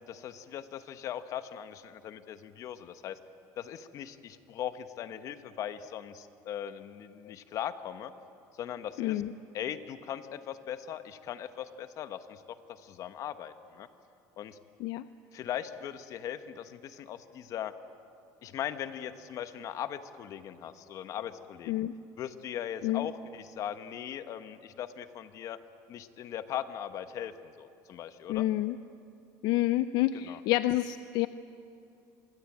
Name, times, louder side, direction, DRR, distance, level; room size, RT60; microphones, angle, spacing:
voice 1, 0.1-3.2 3.6-8.1 8.6-9.2 9.5-13.9 14.4-14.6 15.3-17.7 18.4-21.8 22.2-25.6 25.9-28.5 30.1-30.4, left 10 dB, 45° left, 11 dB, 1.2 m, -39 dB
voice 2, 9.0-9.3 14.8-15.1 21.7-21.9 22.8-23.1 28.3-28.8 29.4-31.3, left 15 dB, 70° left, 13 dB, 0.6 m, -28 dB
26.5 x 21.5 x 8.7 m, 2.7 s
cardioid pair, 145°, 7 cm